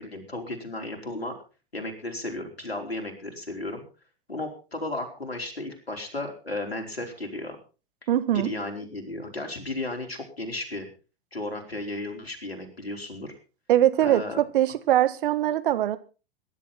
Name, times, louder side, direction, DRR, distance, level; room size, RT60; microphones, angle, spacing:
voice 1, 0.0-1.3 1.7-3.8 4.3-7.6 8.0-8.1 8.4-10.9 11.3-13.3 14.0-14.4, left 2 dB, 90° left, 4.6 m, -34 dB
voice 2, 8.1-8.5 13.7-16.0, right 12 dB, 60° right, 1.7 m, -22 dB
21.0 x 11.5 x 4.3 m
figure-of-eight pair, 100°, 30 cm